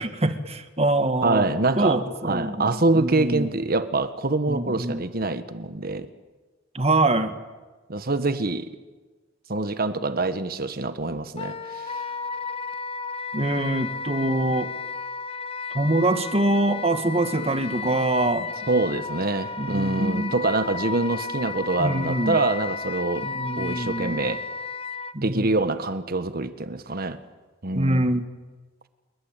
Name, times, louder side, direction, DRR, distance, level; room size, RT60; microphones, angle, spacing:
voice 1, 0.0-1.5 1.8-3.5 4.5-5.1 6.7-7.4 13.3-14.7 15.7-18.5 19.6-20.3 21.8-22.4 23.2-24.2 25.1-25.5 27.7-28.3, right 2 dB, 35° right, 9 dB, 1.8 m, -24 dB
voice 2, 1.2-6.1 7.9-8.7 9.5-11.9 18.7-23.3 23.6-24.4 25.2-27.2 27.6-28.2, right 2 dB, 55° right, 11 dB, 1.4 m, -25 dB
Wind instrument woodwind instrument, 11.4-25.1, left 4 dB, 30° left, 0.9 m, -33 dB
29.0 x 22.5 x 9.0 m, 1.3 s
head